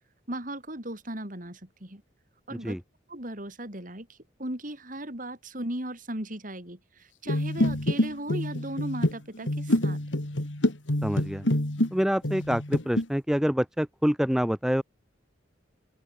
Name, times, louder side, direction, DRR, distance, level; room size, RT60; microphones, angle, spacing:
voice 1, 0.3-2.0 2.5-2.8 3.1-10.0, right 1 dB, 45° right, 5.0 m, -37 dB
sound 1, 7.3-11.9 12.2-13.0, left 1 dB, 75° left, 2.7 m, -27 dB
voice 2, 11.0-11.4 11.9-14.8, equal, 5° right, 0.5 m, -26 dB
open air
head